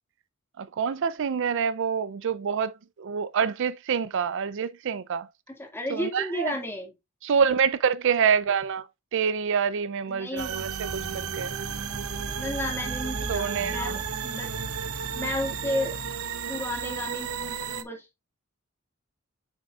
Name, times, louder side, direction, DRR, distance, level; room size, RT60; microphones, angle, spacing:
voice 1, 0.6-2.7 3.0-5.3 5.9-6.5 7.2-8.8 9.1-11.5 13.3-14.0, right 6 dB, 60° right, 0.4 m, -26 dB
voice 2, 5.5-6.9 10.1-10.7 12.3-14.5 15.1-16.1 16.5-18.1, left 1 dB, 10° left, 2.0 m, -33 dB
sound 1, 10.4-17.8, right 6 dB, 90° right, 0.8 m, -33 dB
sound 2, 10.9-16.2, equal, 30° left, 1.7 m, -43 dB
7.2 x 6.2 x 2.4 m
head